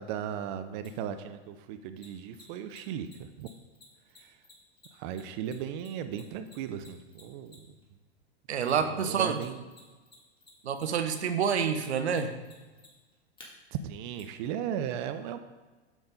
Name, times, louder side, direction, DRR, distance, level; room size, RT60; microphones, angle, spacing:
voice 1, 0.0-3.5 4.2-4.4 4.9-7.7 8.7-9.7 13.7-15.4, right 9 dB, 50° right, 10 dB, 0.6 m, -36 dB
Mechanisms, 0.8-0.9 2.0-7.8 8.6-9.4 9.7-13.5 14.2-14.3, left 3 dB, 15° left, 2.1 m, -54 dB
voice 2, 8.5-9.4 10.6-12.3, right 7 dB, 80° right, 9 dB, 0.9 m, -28 dB
7.2 x 7.2 x 4.0 m, 1.3 s
hypercardioid pair, 100°, 32 cm